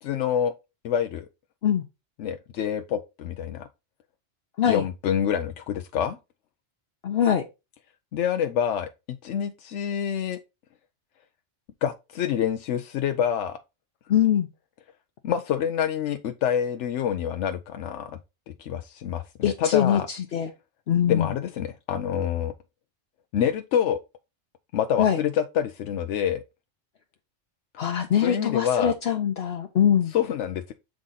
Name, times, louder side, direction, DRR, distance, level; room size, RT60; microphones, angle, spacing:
voice 1, 0.0-0.5 0.8-1.3 2.2-3.7 4.7-6.2 8.1-10.4 11.8-13.6 15.2-18.2 18.6-20.1 21.1-22.5 23.3-24.0 24.7-26.4 28.2-28.9 30.1-30.7, left 9 dB, 85° left, 0.9 m, -27 dB
voice 2, 7.0-7.4 14.1-14.5 19.4-20.5 20.9-21.3 25.0-25.2 27.8-30.1, left 9 dB, 65° left, 1.0 m, -22 dB
7.5 x 3.7 x 3.9 m
omnidirectional pair, 1.2 m